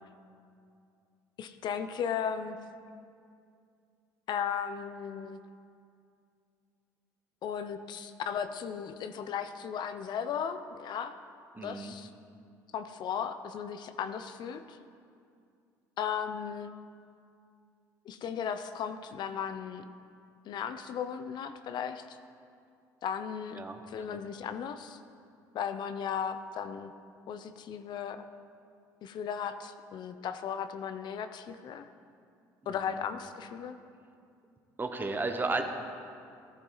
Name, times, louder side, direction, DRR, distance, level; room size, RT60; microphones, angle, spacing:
voice 1, 1.4-2.6 4.3-5.4 7.4-11.2 11.6-12.1 12.7-14.8 16.0-16.7 18.1-19.8 20.5-22.2 23.0-23.6 23.9-25.0 25.5-26.9 27.3-28.2 29.0-31.9 32.7-33.8, left 7 dB, 60° left, 10 dB, 0.6 m, -36 dB
voice 2, 11.5-11.9 23.5-23.8 24.1-24.2 32.6-33.0 34.8-35.6, right 3 dB, 25° right, 6 dB, 1.2 m, -34 dB
14.5 x 11.0 x 4.0 m, 2.4 s
supercardioid pair, 75°, 8 cm